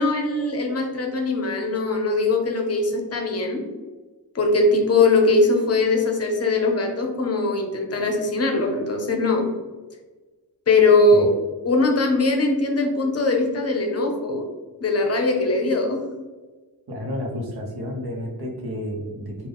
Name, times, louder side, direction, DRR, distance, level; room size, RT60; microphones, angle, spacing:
voice 1, 0.0-3.6 4.3-9.5 10.7-11.3 11.6-14.5 14.8-16.0, left 2 dB, 40° left, 3 dB, 0.6 m, -21 dB
voice 2, 16.9-19.5, equal, 90° right, -1 dB, 1.0 m, -31 dB
3.8 x 2.4 x 3.4 m, 1.3 s
wide cardioid pair, 155°, 37 cm